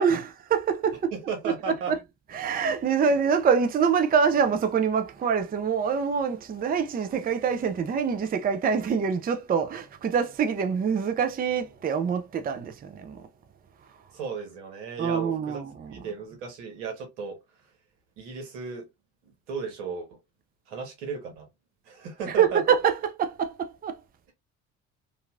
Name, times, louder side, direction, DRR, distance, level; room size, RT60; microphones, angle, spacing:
voice 1, 0.0-1.1 1.9-2.0 2.3-13.2 15.0-16.1 22.3-24.0, right 6 dB, 25° right, 0.5 m, -25 dB
voice 2, 1.1-1.9 14.1-15.6 15.9-17.4 18.2-18.9 19.5-20.2 20.7-21.5 21.9-22.6, right 5 dB, 85° right, 1.2 m, -35 dB
2.8 x 2.6 x 2.4 m
hypercardioid pair, 65°, 35 cm